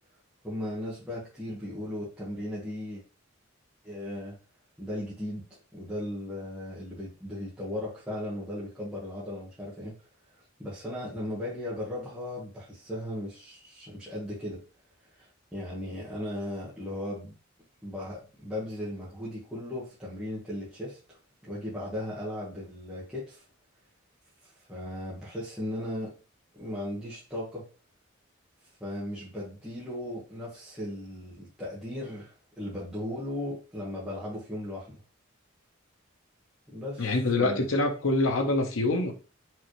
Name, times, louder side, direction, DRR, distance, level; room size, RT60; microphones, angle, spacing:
voice 1, 0.4-3.0 3.8-4.4 4.8-5.5 5.7-10.0 10.3-14.6 15.2-17.3 17.8-21.0 21.4-23.4 24.7-26.1 26.5-27.7 28.8-35.0 36.7-37.1 37.4-37.6, left 1 dB, 5° right, 1.2 m, -37 dB
voice 2, 37.0-39.1, left 2 dB, 90° left, 0.9 m, -25 dB
4.6 x 3.3 x 3.1 m
head